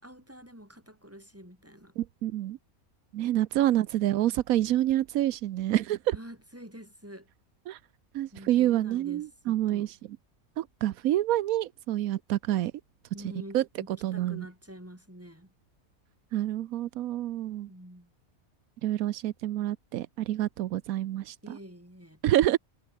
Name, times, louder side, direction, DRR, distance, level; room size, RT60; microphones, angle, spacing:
voice 1, 0.0-1.9 3.7-4.1 6.1-7.3 8.3-9.9 13.1-15.5 17.7-18.1 21.4-22.2, equal, 10° right, 6.3 m, -47 dB
voice 2, 2.0-2.6 3.1-6.2 7.7-7.8 8.1-9.9 10.6-12.7 13.5-13.6 14.0-14.5 16.3-17.7 18.8-21.6 22.2-22.6, right 13 dB, 85° right, 1.1 m, -27 dB
omnidirectional pair, 1.4 m